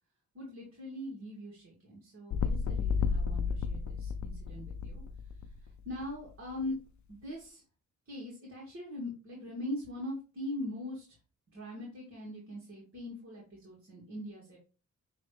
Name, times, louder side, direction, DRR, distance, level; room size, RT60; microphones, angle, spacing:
voice 1, 0.3-5.0 5.8-6.8 7.1-7.6 8.1-11.2 11.5-14.6, left 1 dB, 45° right, -3 dB, 2.5 m, -41 dB
sound 1, 2.3-6.1 6.6-6.7, left 5 dB, 65° left, 0.6 m, -33 dB
9.4 x 3.3 x 3.4 m, 0.34 s
wide cardioid pair, 110°, 31 cm